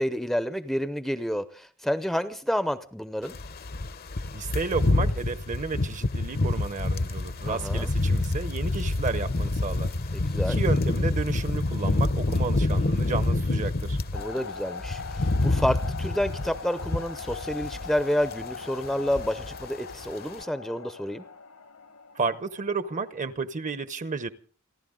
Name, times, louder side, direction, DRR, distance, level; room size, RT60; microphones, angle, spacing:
voice 1, 0.0-3.4 7.5-7.9 10.1-10.6 14.1-21.2, equal, ahead, 0.6 m, -29 dB
sound 1, 3.3-14.2 14.6-18.0 18.2-18.5 18.8-19.7 19.9-20.1, left 2 dB, 45° left, 0.8 m, -27 dB
voice 2, 4.3-9.9 10.5-14.0 22.1-24.3, right 4 dB, 35° right, 0.9 m, -32 dB
sound 2, 14.1-23.2, left 5 dB, 75° left, 1.3 m, -41 dB
29.5 x 11.5 x 3.8 m
head